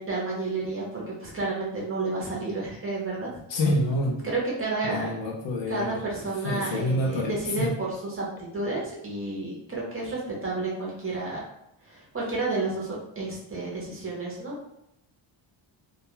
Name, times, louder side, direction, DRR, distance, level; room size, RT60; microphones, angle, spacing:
voice 1, 0.0-3.4 4.2-5.1 5.7-8.3 8.5-11.4 11.8-14.6, right 3 dB, 25° right, -4 dB, 0.7 m, -31 dB
voice 2, 3.5-4.3 4.8-6.0 6.4-7.8, left 1 dB, 65° left, 1 dB, 0.6 m, -27 dB
2.3 x 2.2 x 2.9 m, 0.82 s
wide cardioid pair, 160°, 48 cm